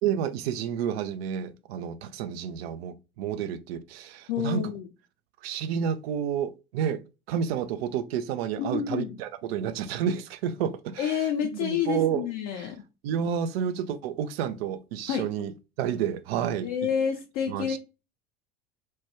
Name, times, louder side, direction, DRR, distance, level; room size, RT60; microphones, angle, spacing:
voice 1, 0.0-4.6 5.4-7.0 7.3-12.2 12.5-12.7 13.0-15.5 15.8-16.7 17.5-17.8, right 8 dB, 65° right, 0.5 m, -30 dB
voice 2, 4.3-4.9 8.6-9.2 11.0-12.8 15.1-15.3 16.6-17.8, left 8 dB, 55° left, 0.5 m, -29 dB
3.0 x 2.2 x 2.9 m
figure-of-eight pair, 70°, 33 cm